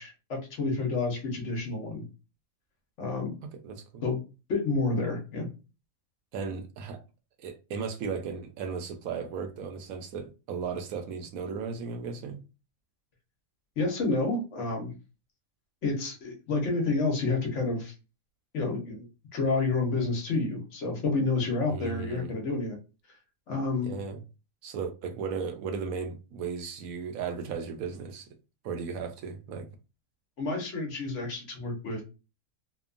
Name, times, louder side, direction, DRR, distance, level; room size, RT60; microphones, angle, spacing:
voice 1, 0.0-2.0 3.0-3.3 4.0-4.2 4.5-5.5 13.8-14.9 15.8-17.9 18.5-19.1 19.3-22.8 23.5-23.9 30.4-32.0, left 3 dB, 60° left, 1.1 m, -29 dB
voice 2, 3.6-4.0 6.3-7.0 7.4-12.4 21.7-22.3 23.8-24.2 24.6-28.3 28.6-29.7, right 5 dB, 80° right, 1.0 m, -35 dB
2.9 x 2.2 x 2.4 m
omnidirectional pair, 1.5 m